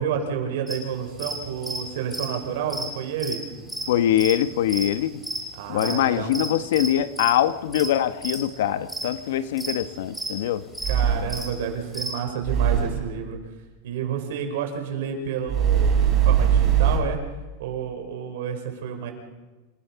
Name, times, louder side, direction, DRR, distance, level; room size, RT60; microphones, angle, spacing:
voice 1, 0.0-3.4 5.6-6.4 10.9-13.4 13.8-17.2 17.6-19.1, right 7 dB, 70° right, 4 dB, 5.0 m, -30 dB
sound 1, 0.7-12.1, right 1 dB, ahead, 4.6 m, -33 dB
voice 2, 3.9-5.2 5.7-10.6, left 11 dB, 80° left, 13 dB, 1.0 m, -23 dB
sound 2, 9.8-9.9 10.8-11.5 12.4-13.1 15.5-17.0, right 8 dB, 25° right, 4.7 m, -20 dB
28.0 x 16.5 x 5.8 m, 1.1 s
supercardioid pair, 165°, 0 cm